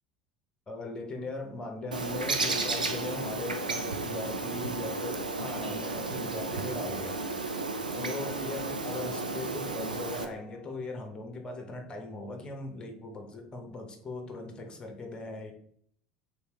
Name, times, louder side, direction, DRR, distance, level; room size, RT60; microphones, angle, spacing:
voice 1, 0.7-7.3 7.9-15.5, left 2 dB, 20° left, 4 dB, 0.9 m, -39 dB
Bird, 1.9-10.2, right 3 dB, 85° right, 0.4 m, -33 dB
Guitar, 5.0-13.2, left 1 dB, 45° right, 1.4 m, -54 dB
3.3 x 3.1 x 3.2 m, 0.63 s
figure-of-eight pair, 70°, 4 cm